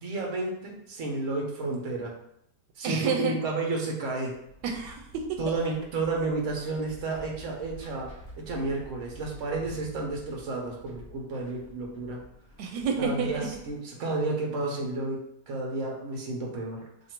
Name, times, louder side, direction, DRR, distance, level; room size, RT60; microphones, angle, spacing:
voice 1, 0.0-2.1 2.8-4.3 5.4-8.1 8.5-12.2 13.0-16.8, right 3 dB, 55° right, 0 dB, 1.0 m, -31 dB
voice 2, 2.8-3.4 4.6-5.4 12.6-13.5, right 5 dB, 85° right, 3 dB, 1.2 m, -29 dB
sound 1, 4.2-13.8, equal, 30° left, 0.8 m, -49 dB
2.9 x 2.6 x 4.3 m, 0.75 s
omnidirectional pair, 1.8 m